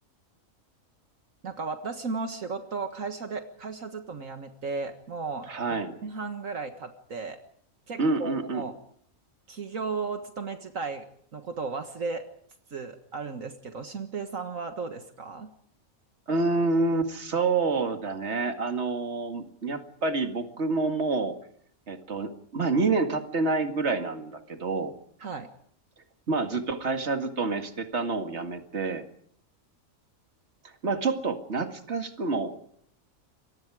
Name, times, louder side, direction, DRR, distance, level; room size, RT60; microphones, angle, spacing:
voice 1, 1.4-5.5 6.0-7.4 7.9-8.7 9.5-11.1 11.3-12.2 12.7-15.5 25.2-25.5, right 4 dB, 70° right, 6 dB, 2.0 m, -35 dB
voice 2, 5.5-5.9 8.0-8.6 16.3-21.3 21.9-24.9 26.3-29.0 30.6-32.5, right 3 dB, 55° right, 6 dB, 2.3 m, -28 dB
28.0 x 23.0 x 4.9 m, 0.66 s
omnidirectional pair, 1.4 m